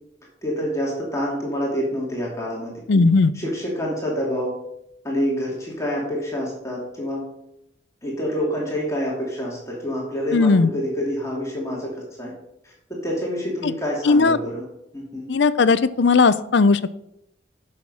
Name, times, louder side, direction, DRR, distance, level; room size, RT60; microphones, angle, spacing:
voice 1, 0.4-3.0 3.3-4.6 5.0-7.3 8.0-12.3 12.6-14.6 14.9-15.3, equal, 15° left, -4 dB, 2.5 m, -27 dB
voice 2, 2.9-3.3 10.3-10.7 13.6-13.7 14.0-14.4 15.3-16.8, left 4 dB, 65° left, 15 dB, 0.5 m, -17 dB
10.5 x 6.4 x 5.5 m, 0.81 s
head